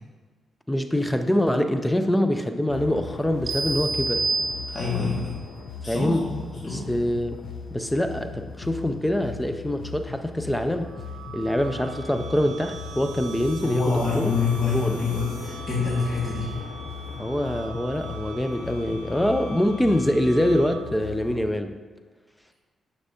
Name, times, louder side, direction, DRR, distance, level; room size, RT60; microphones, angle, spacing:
voice 1, 0.7-4.3 5.9-6.3 6.6-7.4 7.7-10.9 11.3-14.3 14.7-15.0 17.2-21.7, left 1 dB, 5° left, 7 dB, 0.4 m, -24 dB
sound 1, 2.7-21.5, left 5 dB, 80° left, 0.5 m, -38 dB
sound 2, 3.5-5.2, right 3 dB, 45° right, 0.6 m, -27 dB
voice 2, 4.7-5.4 5.8-6.4 6.6-6.9 13.6-16.5, left 4 dB, 35° left, -7 dB, 1.7 m, -26 dB
sound 3, 10.7-21.1, right 3 dB, 80° right, 0.9 m, -43 dB
9.7 x 6.9 x 2.8 m, 1.4 s
cardioid pair, 135°, 0 cm